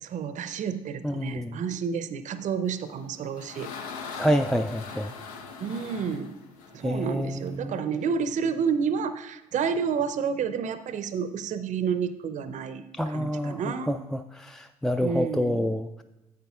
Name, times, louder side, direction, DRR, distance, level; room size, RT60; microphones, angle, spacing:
voice 1, 0.0-3.7 5.6-6.3 6.7-14.0 15.0-15.6, right 6 dB, 45° right, 12 dB, 0.6 m, -30 dB
voice 2, 1.0-1.6 4.2-5.1 6.8-7.8 12.9-16.0, equal, ahead, 8 dB, 0.3 m, -28 dB
sound 1, 2.9-7.6, left 5 dB, 80° left, 0.7 m, -41 dB
10.5 x 7.8 x 2.3 m, 1.0 s
hypercardioid pair, 55°, 18 cm